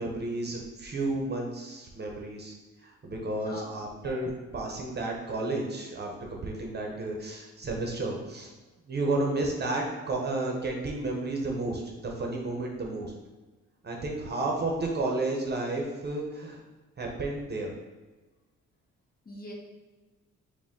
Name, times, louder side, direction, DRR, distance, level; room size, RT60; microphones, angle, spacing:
voice 1, 0.0-2.5 2.8-8.5 8.9-13.1 13.8-16.6 17.0-17.7, right 2 dB, 35° right, 0 dB, 0.8 m, -32 dB
voice 2, 3.4-4.2 19.3-19.5, equal, 30° left, -1 dB, 0.9 m, -43 dB
4.9 x 2.2 x 3.6 m, 1.2 s
cardioid pair, 90°, 30 cm